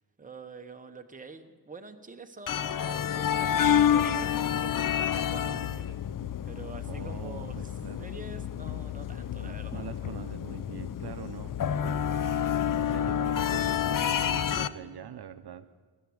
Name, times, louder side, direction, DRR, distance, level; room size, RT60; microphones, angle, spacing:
voice 1, 0.2-6.0 6.5-7.6 8.0-9.9 11.4-11.6, right 4 dB, 20° right, 6 dB, 0.9 m, -46 dB
sound 1, 2.5-14.7, left 9 dB, 50° left, 0.5 m, -29 dB
voice 2, 6.9-8.0 9.4-11.5 11.8-15.8, right 9 dB, 65° right, 11 dB, 0.6 m, -44 dB
16.0 x 11.0 x 6.3 m, 1.4 s
wide cardioid pair, 120°, 42 cm